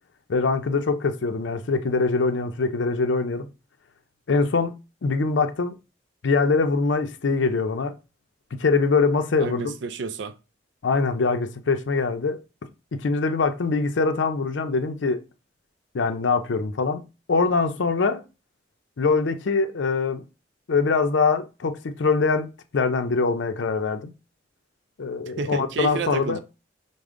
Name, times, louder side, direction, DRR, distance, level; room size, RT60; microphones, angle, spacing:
voice 1, 0.3-3.5 4.3-4.8 5.0-5.7 6.2-7.9 8.5-9.7 10.8-12.4 12.9-15.2 15.9-17.0 17.3-18.2 19.0-20.2 20.7-22.5 22.7-24.1 25.0-26.4, left 4 dB, 85° left, 0.5 m, -23 dB
voice 2, 9.4-10.3 25.3-26.4, right 5 dB, 75° right, 0.4 m, -31 dB
5.0 x 2.1 x 3.6 m
head